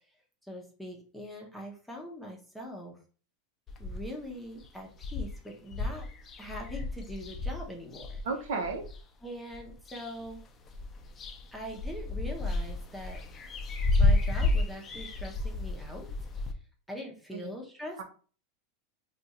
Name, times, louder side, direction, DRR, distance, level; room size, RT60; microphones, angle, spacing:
voice 1, 0.4-3.0 3.8-6.1 6.4-8.2 9.2-10.4 11.5-13.2 14.0-16.1 16.9-18.0, equal, ahead, -1 dB, 0.8 m, -42 dB
sound 1, 3.7-4.3 4.6-4.7 4.9-9.0 9.5-10.4 10.7-16.5, left 2 dB, 25° left, 0.5 m, -31 dB
voice 2, 8.2-8.8 17.3-17.5 18.0-18.1, right 4 dB, 75° right, 3 dB, 0.8 m, -33 dB
2.5 x 2.4 x 4.1 m, 0.41 s
supercardioid pair, 130°, 0 cm